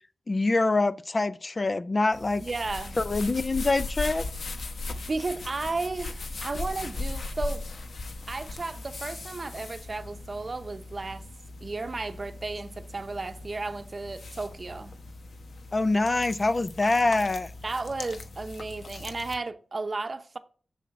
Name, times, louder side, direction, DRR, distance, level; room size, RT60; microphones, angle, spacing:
voice 1, 0.3-2.4 3.0-4.2 15.7-17.5, left 2 dB, 35° left, 0.4 m, -25 dB
sound 1, 2.1-19.4, left 3 dB, 70° left, 1.0 m, -38 dB
voice 2, 2.4-3.0 5.1-7.7 8.3-11.3 11.6-14.9 17.6-20.4, right 3 dB, 35° right, 0.8 m, -34 dB
7.2 x 7.1 x 5.9 m
wide cardioid pair, 135°, 0 cm